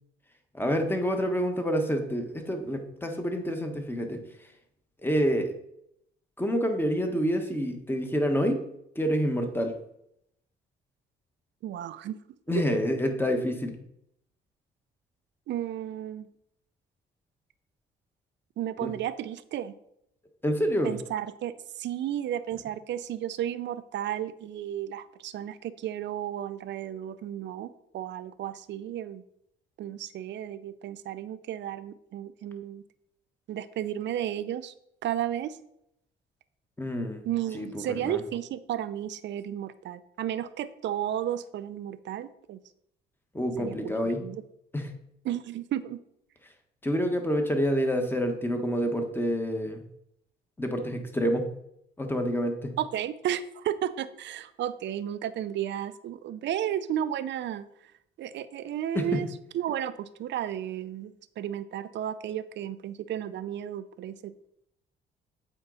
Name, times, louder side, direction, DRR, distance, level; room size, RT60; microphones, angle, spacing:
voice 1, 0.5-4.2 5.0-5.5 6.4-8.6 8.9-9.7 12.5-13.8 18.8-18.9 20.4-20.9 36.8-37.3 37.5-38.2 43.3-44.2 44.7-44.9 46.8-49.8 50.6-51.5 52.0-52.7 58.9-59.2, equal, 10° left, 4 dB, 1.3 m, -27 dB
voice 2, 11.6-12.2 15.5-16.3 18.6-19.7 20.8-29.2 29.8-32.8 33.5-34.7 35.0-35.6 37.2-42.6 43.6-43.9 44.2-44.4 45.2-46.0 52.8-57.7 58.2-59.3 59.5-64.3, right 11 dB, 65° right, 13 dB, 0.5 m, -33 dB
8.1 x 4.6 x 4.0 m, 0.76 s
cardioid pair, 90°, 20 cm